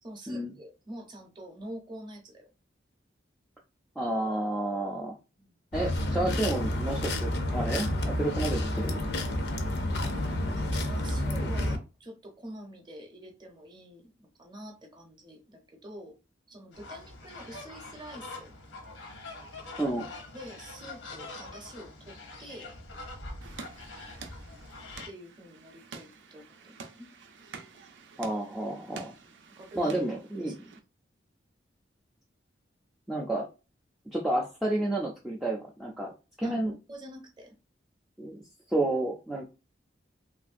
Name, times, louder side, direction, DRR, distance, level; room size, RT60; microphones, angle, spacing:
voice 1, 0.0-2.5 5.4-5.5 10.5-16.1 16.5-18.5 20.3-22.7 25.0-27.1 29.2-29.3 29.6-30.0 30.5-30.6 36.4-37.5, right 1 dB, 25° right, 2 dB, 0.7 m, -46 dB
voice 2, 4.0-5.2 5.7-9.0 19.8-20.1 28.2-29.1 29.8-30.7 33.1-33.5 34.1-36.1 36.4-36.7 38.2-38.4 38.7-39.5, right 1 dB, ahead, -5 dB, 0.3 m, -30 dB
sound 1, 5.7-11.8, left 1 dB, 60° left, 0.5 m, -30 dB
sound 2, 16.7-25.1, left 2 dB, 85° left, 0.9 m, -44 dB
sound 3, 23.4-30.8, right 4 dB, 80° right, 0.5 m, -48 dB
3.0 x 2.5 x 2.5 m, 0.30 s
head